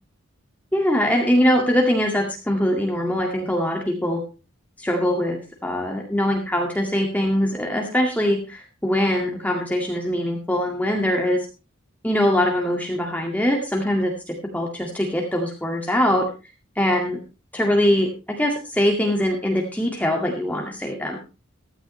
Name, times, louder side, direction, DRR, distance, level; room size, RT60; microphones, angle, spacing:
voice 1, 0.7-4.2 4.8-11.5 12.0-16.3 16.8-17.2 17.5-21.2, left 1 dB, 10° left, 0 dB, 2.0 m, -22 dB
16.0 x 13.5 x 3.2 m, 0.30 s
head